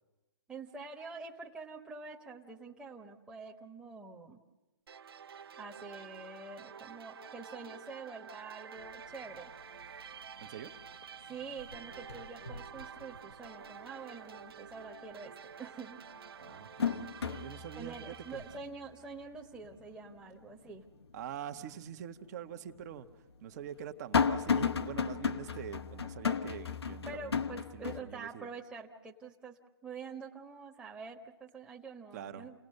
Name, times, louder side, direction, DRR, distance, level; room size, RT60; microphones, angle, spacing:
voice 1, 0.5-4.4 5.6-9.9 11.2-16.0 17.8-20.8 27.0-32.5, right 4 dB, 5° right, -2 dB, 1.2 m, -46 dB
sound 1, 4.9-18.6, right 7 dB, 70° right, 0.8 m, -50 dB
sound 2, 8.8-8.9 9.3-9.9 10.2-11.0 11.3-13.6 14.0-14.1 15.5-15.6 16.1-21.3 21.7-21.8 22.7-28.0, left 6 dB, 85° left, 1.1 m, -35 dB
voice 2, 10.4-10.8 16.4-18.4 21.1-23.1 23.4-27.4 27.7-28.5 32.1-32.5, right 9 dB, 40° right, 8 dB, 1.3 m, -45 dB
30.0 x 18.5 x 6.7 m, 1.1 s
hypercardioid pair, 140°, 13 cm